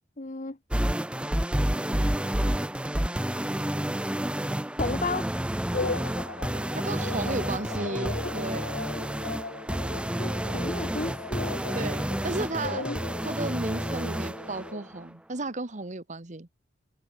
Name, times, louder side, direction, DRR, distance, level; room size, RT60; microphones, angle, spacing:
voice 1, 0.2-0.6 4.8-5.3 10.2-11.6 12.8-12.9, left 3 dB, 45° left, 1.2 m, -33 dB
sound 1, 0.7-14.8, right 1 dB, 5° right, 0.6 m, -30 dB
sound 2, 5.7-14.9, left 3 dB, 65° left, 1.0 m, -38 dB
voice 2, 6.7-8.7 11.7-16.5, right 2 dB, 45° right, 1.5 m, -34 dB
head